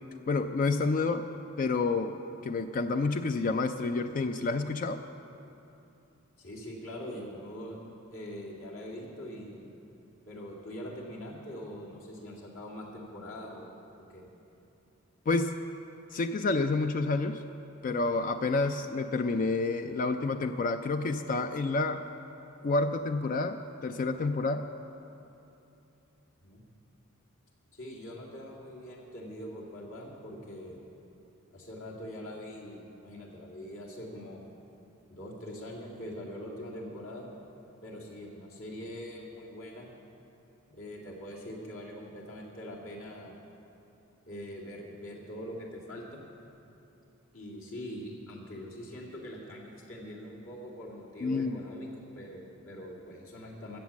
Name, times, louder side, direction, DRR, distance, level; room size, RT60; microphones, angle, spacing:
voice 1, 0.3-1.3 1.6-5.0 15.3-15.6 16.1-17.4 17.8-22.1 22.6-24.7 51.2-51.6, left 3 dB, 40° left, 8 dB, 0.3 m, -29 dB
voice 2, 6.4-7.8 8.1-9.7 10.3-13.7 14.1-14.2 26.4-26.6 27.7-30.9 31.5-34.4 35.1-37.3 37.8-39.9 40.7-43.4 44.3-46.2 47.3-53.8, equal, 70° left, -3 dB, 2.3 m, -43 dB
13.5 x 8.1 x 7.1 m, 2.9 s
head